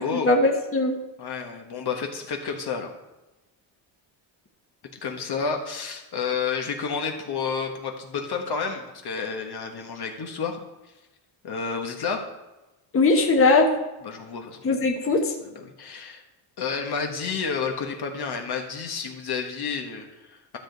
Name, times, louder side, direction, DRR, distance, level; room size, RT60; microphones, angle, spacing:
voice 1, 0.0-1.0 12.9-13.7 14.6-15.3, left 3 dB, 25° left, 1 dB, 1.3 m, -20 dB
voice 2, 1.2-2.9 5.0-10.6 11.4-12.3 14.0-14.6 15.4-16.2 16.6-20.6, left 5 dB, 55° left, 3 dB, 1.4 m, -30 dB
12.5 x 6.6 x 4.0 m, 1.1 s
cardioid pair, 110°, 48 cm